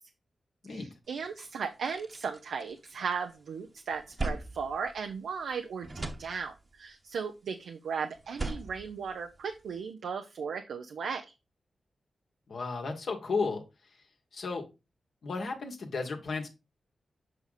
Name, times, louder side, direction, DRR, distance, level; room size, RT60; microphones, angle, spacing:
voice 1, 0.7-11.3, right 6 dB, 90° right, 5 dB, 0.7 m, -36 dB
sound 1, 1.2-1.3 1.6-3.3 3.7-5.5 5.8-6.9 8.1-9.8, right 2 dB, 35° right, 1.1 m, -39 dB
voice 2, 12.5-13.6 14.3-14.6 15.2-16.5, left 4 dB, 75° left, 2 dB, 1.9 m, -33 dB
7.7 x 5.0 x 4.1 m, 0.27 s
cardioid pair, 60°, 0 cm